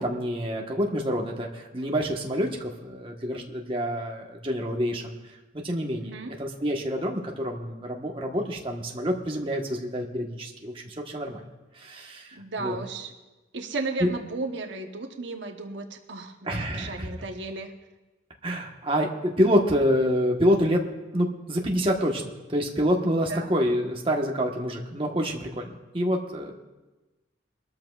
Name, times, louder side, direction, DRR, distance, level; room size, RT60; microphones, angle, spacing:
voice 1, 0.0-5.1 5.6-6.1 6.4-11.4 11.8-12.8 14.0-14.1 16.5-17.3 18.4-20.8 21.1-22.2 22.5-25.7 25.9-26.5, equal, 30° right, 0 dB, 1.3 m, -27 dB
voice 2, 6.0-6.4 12.3-13.1 13.5-16.4 16.7-17.7 23.3-23.5, right 3 dB, 70° right, 4 dB, 1.1 m, -34 dB
23.0 x 13.0 x 2.5 m, 1.1 s
head